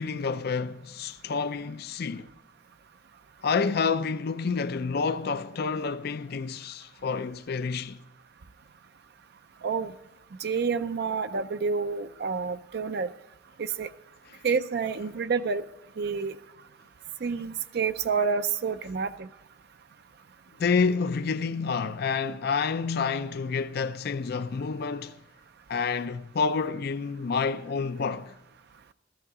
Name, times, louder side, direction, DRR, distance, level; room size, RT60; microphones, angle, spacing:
voice 1, 0.0-2.3 3.4-8.0 20.6-25.1 25.7-28.3, left 5 dB, 55° left, 0.4 m, -28 dB
voice 2, 9.6-9.9 10.4-13.1 13.6-13.9 14.4-15.6 16.0-16.4 17.2-19.3, right 5 dB, 55° right, 0.5 m, -28 dB
14.0 x 13.5 x 4.8 m
head